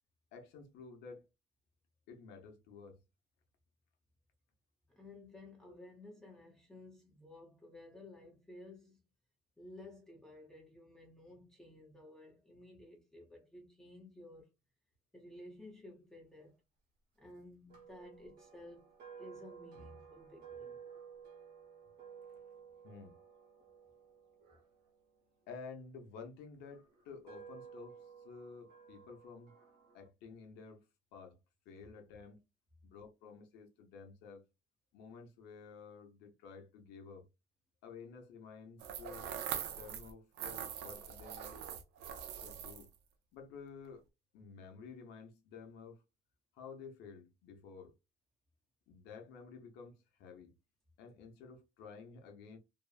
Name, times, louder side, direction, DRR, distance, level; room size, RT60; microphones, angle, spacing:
voice 1, 0.3-1.3 2.1-3.0 5.7-5.8 22.8-23.2 25.5-29.5 29.9-31.4 31.7-32.4 32.8-34.4 34.9-37.3 37.8-39.3 39.6-41.6 42.3-42.9 43.3-44.0 44.3-46.0 46.5-47.9 48.9-50.6 51.0-52.6, left 5 dB, 90° left, 0.8 m, -52 dB
voice 2, 4.9-9.0 9.6-14.5 15.1-16.6 17.2-18.9 19.2-20.8, left 1 dB, 5° left, 0.7 m, -54 dB
sound 1, 17.7-25.9 26.6-30.1, right 7 dB, 65° right, 1.2 m, -55 dB
sound 2, 38.8-40.1 40.4-43.0, right 9 dB, 80° right, 0.5 m, -42 dB
2.8 x 2.1 x 2.3 m
cardioid pair, 110°, 17 cm